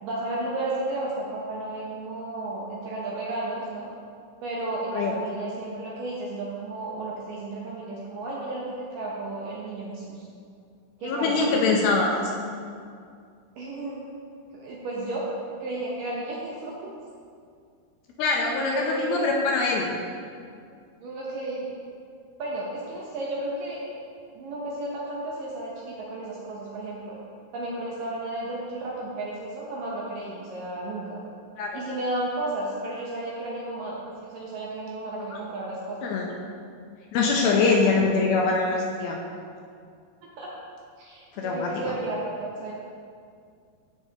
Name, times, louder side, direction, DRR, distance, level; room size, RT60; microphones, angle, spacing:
voice 1, 0.0-3.9 4.4-10.3 11.0-12.0 13.6-14.0 14.5-15.2 15.6-16.7 18.6-19.2 21.0-21.7 22.4-23.8 24.4-27.2 27.5-31.2 31.7-36.1 37.2-37.9 38.2-38.3 40.4-40.5 41.0-42.7, right 2 dB, 75° right, -5 dB, 2.1 m, -33 dB
voice 2, 11.0-12.1 18.2-19.9 31.6-31.8 35.3-35.4 36.0-36.2 37.1-39.2 41.4-41.9, left 4 dB, 80° left, 0 dB, 2.3 m, -23 dB
14.0 x 4.8 x 2.8 m, 2.3 s
omnidirectional pair, 4.8 m